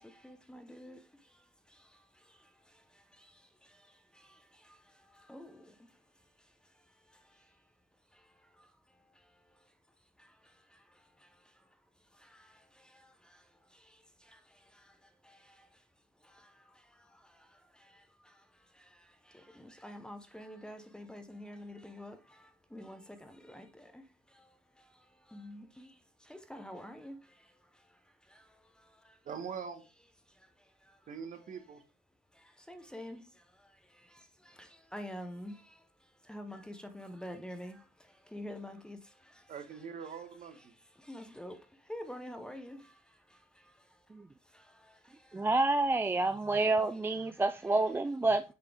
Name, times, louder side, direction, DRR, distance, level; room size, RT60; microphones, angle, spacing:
voice 1, 0.0-7.7 8.1-9.7 10.2-15.9 16.2-29.2 30.3-31.1 32.3-40.2 40.6-45.5 46.2-46.7 47.2-47.8, left 1 dB, 5° left, 0.9 m, -51 dB
voice 2, 29.2-29.8 31.1-31.8 39.5-40.7, right 6 dB, 50° right, 1.3 m, -43 dB
voice 3, 45.3-48.4, right 2 dB, 15° right, 0.4 m, -28 dB
6.9 x 4.7 x 3.4 m
cardioid pair, 110°, 17 cm